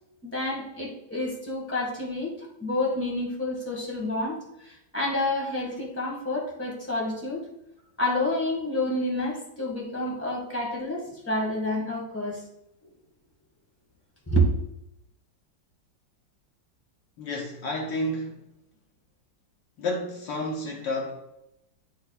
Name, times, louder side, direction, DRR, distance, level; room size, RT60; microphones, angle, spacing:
voice 1, 0.2-7.4 8.0-12.4 14.3-14.5, left 1 dB, 5° left, -3 dB, 1.8 m, -29 dB
voice 2, 17.2-18.4 19.8-21.1, left 1 dB, 70° left, -1 dB, 1.6 m, -30 dB
10.5 x 4.5 x 2.4 m, 0.85 s
omnidirectional pair, 2.0 m